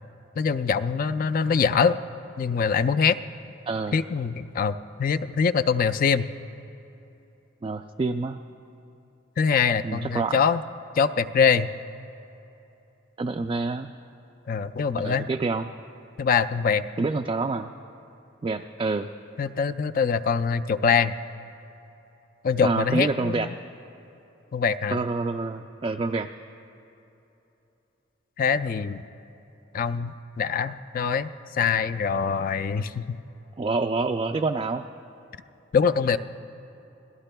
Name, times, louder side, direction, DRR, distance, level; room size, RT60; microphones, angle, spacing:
voice 1, 0.4-2.0 2.4-3.2 3.9-6.3 9.4-10.6 11.0-11.7 14.5-15.3 16.2-16.9 19.4-21.2 22.4-23.5 24.5-25.0 28.4-29.0 29.7-33.2 35.7-36.2, left 6 dB, 45° left, 11 dB, 0.4 m, -24 dB
voice 2, 3.7-4.0 7.6-8.4 9.8-10.4 13.2-13.9 15.0-15.7 17.0-17.7 18.4-19.1 22.6-23.5 24.9-26.3 33.6-34.8, right 3 dB, 25° right, 4 dB, 0.3 m, -27 dB
27.0 x 17.5 x 2.2 m, 3.0 s
head